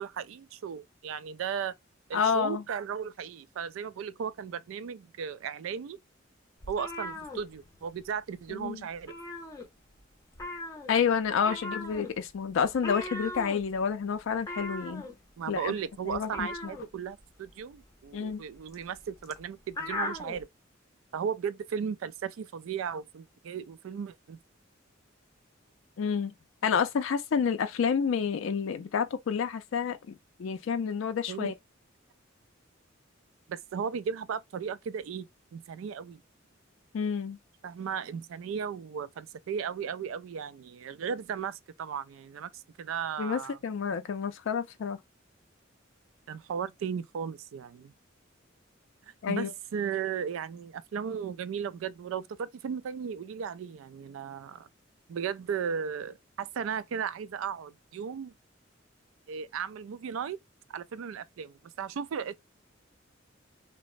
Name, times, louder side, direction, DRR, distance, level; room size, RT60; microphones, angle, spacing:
voice 1, 0.0-1.7 2.1-6.0 6.7-9.2 15.4-20.5 21.1-24.4 31.3-31.5 33.5-36.2 37.6-43.6 46.3-47.9 49.3-54.7 55.1-58.3 59.3-60.4 60.7-62.4, right 7 dB, 80° right, 0.3 m, -36 dB
voice 2, 2.1-2.6 8.5-8.8 10.9-15.0 15.5-15.7 16.1-16.7 18.1-18.4 26.0-26.3 26.6-31.5 36.9-37.4 43.2-45.0 49.2-49.5, left 6 dB, 70° left, 0.4 m, -29 dB
sound 1, 6.6-8.1 8.4-8.6 8.9-10.0 10.3-20.4, left 2 dB, 15° left, 0.6 m, -39 dB
3.0 x 2.0 x 2.4 m
head